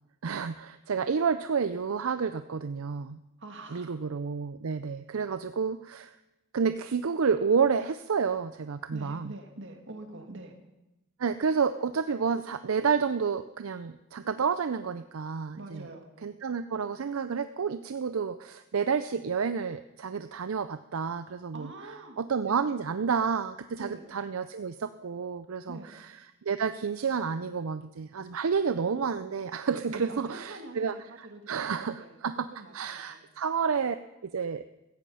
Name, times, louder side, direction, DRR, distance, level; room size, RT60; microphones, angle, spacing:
voice 1, 0.2-3.2 3.7-6.2 6.5-9.3 11.2-15.9 16.2-21.7 22.2-25.8 26.4-30.9 31.5-32.5 32.7-34.0 34.2-34.6, right 6 dB, 80° right, 11 dB, 0.5 m, -30 dB
voice 2, 3.4-4.0 8.9-10.6 15.6-16.1 21.5-22.7 23.8-24.0 25.7-25.9 29.9-33.3, right 2 dB, 60° right, 4 dB, 2.3 m, -45 dB
16.0 x 15.0 x 5.6 m, 0.96 s
head